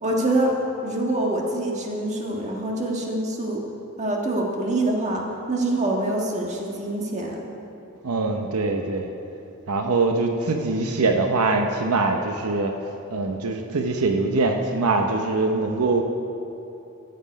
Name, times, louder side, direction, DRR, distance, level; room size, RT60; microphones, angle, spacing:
voice 1, 0.0-0.5 0.8-3.6 4.0-7.4, right 1 dB, 30° right, -1 dB, 1.5 m, -25 dB
voice 2, 8.0-9.1 9.7-12.7 13.1-16.0, right 3 dB, 85° right, 4 dB, 0.8 m, -23 dB
13.5 x 7.9 x 5.2 m, 2.9 s
head